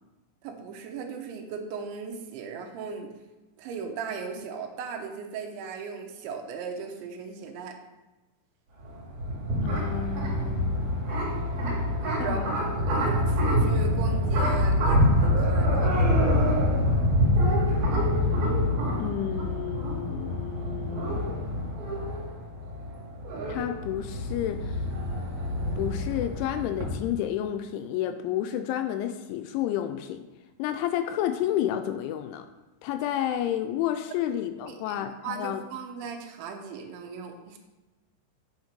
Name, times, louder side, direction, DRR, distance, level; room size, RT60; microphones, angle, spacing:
voice 1, 0.4-3.1 3.6-7.8 12.2-16.3 34.2-34.3 34.7-35.0 35.2-37.6, right 6 dB, 80° right, 4 dB, 3.0 m, -37 dB
sound 1, 8.8-26.9, left 1 dB, 50° right, 2.6 m, -26 dB
voice 2, 9.6-11.0 12.2-12.5 12.9-13.0 19.0-21.3 23.5-24.9 25.7-30.3 30.6-32.5 32.8-35.6, left 11 dB, 85° left, 8 dB, 2.9 m, -31 dB
7.9 x 5.8 x 5.1 m, 1.1 s
omnidirectional pair, 5.6 m